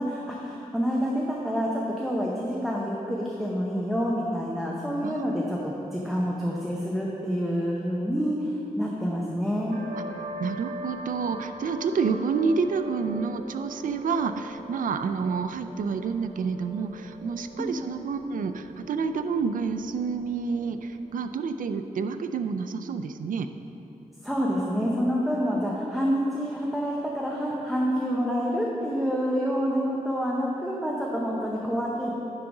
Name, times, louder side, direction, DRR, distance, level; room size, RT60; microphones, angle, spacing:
voice 1, 0.0-9.7 17.6-17.7 24.2-32.1, equal, ahead, -4 dB, 0.7 m, -27 dB
sound 1, 9.7-21.0, equal, 55° right, 1.0 m, -42 dB
voice 2, 10.4-23.5, right 5 dB, 75° right, 9 dB, 0.4 m, -29 dB
9.8 x 3.8 x 5.9 m, 2.9 s
wide cardioid pair, 140°, 14 cm